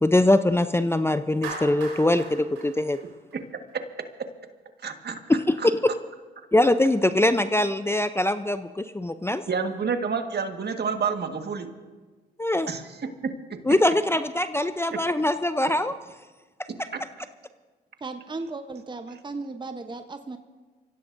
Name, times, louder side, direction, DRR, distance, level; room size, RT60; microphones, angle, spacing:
voice 1, 0.0-3.0 5.3-5.9 6.5-9.4 12.4-12.7 13.6-15.9, left 1 dB, 10° left, 11 dB, 0.6 m, -22 dB
Clapping, 1.4-3.7, right 4 dB, 90° right, 3.0 m, -39 dB
voice 2, 4.8-5.7 9.5-11.7 12.7-12.8 14.9-15.0 16.9-17.0, right 5 dB, 50° right, 6 dB, 1.6 m, -29 dB
voice 3, 18.0-20.4, right 3 dB, 20° right, 8 dB, 0.9 m, -36 dB
25.0 x 16.0 x 2.6 m, 1.4 s
supercardioid pair, 50°, 21 cm